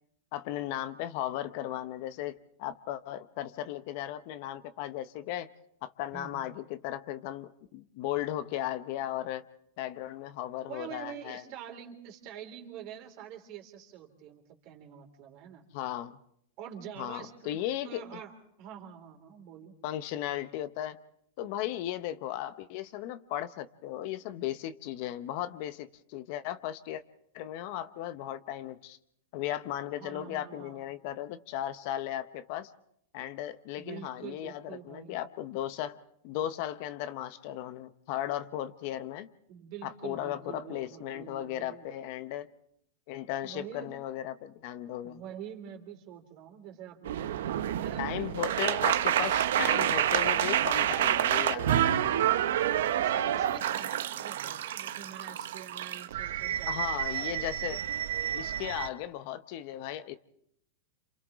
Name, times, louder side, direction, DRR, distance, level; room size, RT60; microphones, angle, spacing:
voice 1, 0.3-5.5 5.8-9.4 9.8-11.4 15.7-16.2 17.0-18.0 19.8-21.0 21.4-27.0 27.3-29.0 29.3-32.7 33.1-36.0 36.2-39.3 39.8-42.5 43.1-45.2 48.0-52.1 56.7-57.8 58.3-60.2, left 12 dB, 50° left, 12 dB, 0.9 m, -36 dB
voice 2, 6.1-6.5 10.7-15.6 16.6-17.6 17.8-18.3 18.6-19.7 29.9-30.8 33.7-35.2 39.5-41.9 43.4-43.9 45.0-48.0 48.6-49.1 52.9-57.5, right 9 dB, 45° right, 4 dB, 3.5 m, -46 dB
sound 1, 47.0-58.9, right 11 dB, 80° right, 0.9 m, -28 dB
30.0 x 27.5 x 3.7 m, 0.70 s
supercardioid pair, 150°, 0 cm